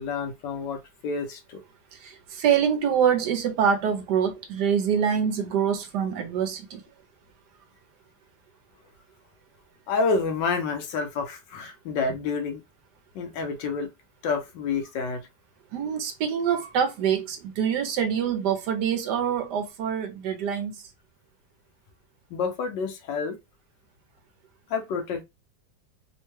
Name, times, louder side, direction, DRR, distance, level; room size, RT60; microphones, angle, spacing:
voice 1, 0.0-1.6 9.9-12.6 13.1-13.9 14.2-15.3 22.3-23.4 24.7-25.2, left 4 dB, 75° left, 1.4 m, -29 dB
voice 2, 2.4-6.8 15.7-20.7, right 8 dB, 70° right, 1.2 m, -25 dB
3.5 x 2.2 x 3.0 m
omnidirectional pair, 2.0 m